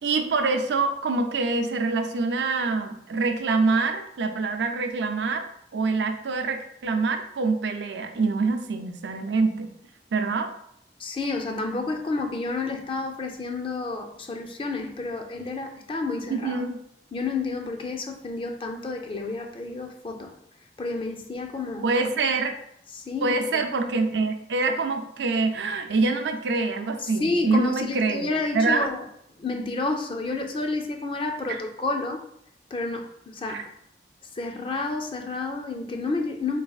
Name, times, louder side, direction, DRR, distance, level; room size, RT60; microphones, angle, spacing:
voice 1, 0.0-5.5 5.7-9.7 10.1-10.5 16.3-16.8 21.8-22.5 23.2-28.3 28.5-28.9 31.5-31.6 33.5-33.6, right 3 dB, 80° right, 0.5 m, -25 dB
voice 2, 11.0-16.6 17.1-20.3 20.8-21.9 22.9-23.4 27.0-29.0 29.4-32.2 32.7-33.7 34.4-36.6, left 3 dB, 30° left, 0.4 m, -30 dB
4.0 x 3.3 x 2.3 m
head